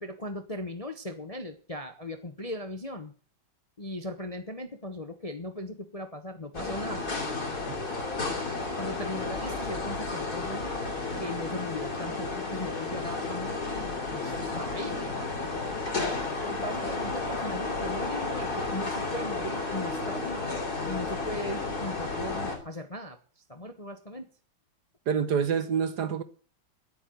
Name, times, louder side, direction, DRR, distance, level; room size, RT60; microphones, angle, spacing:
voice 1, 0.0-3.1 3.8-7.1 8.8-15.0 15.4-15.5 16.4-20.5 20.8-24.3, left 1 dB, 25° left, 0.9 m, -38 dB
sound 1, 6.5-22.6, left 3 dB, 50° left, 3.7 m, -32 dB
voice 2, 25.1-26.2, right 7 dB, 60° right, 1.5 m, -27 dB
10.5 x 8.9 x 9.1 m
omnidirectional pair, 2.2 m